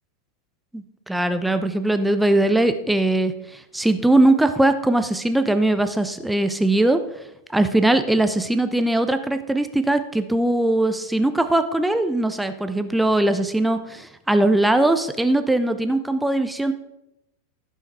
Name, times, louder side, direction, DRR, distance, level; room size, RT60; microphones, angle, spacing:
voice 1, 0.7-7.0 7.5-16.7, right 1 dB, 5° right, 9 dB, 0.8 m, -20 dB
15.5 x 5.7 x 4.8 m, 0.88 s
figure-of-eight pair, 90°, 0 cm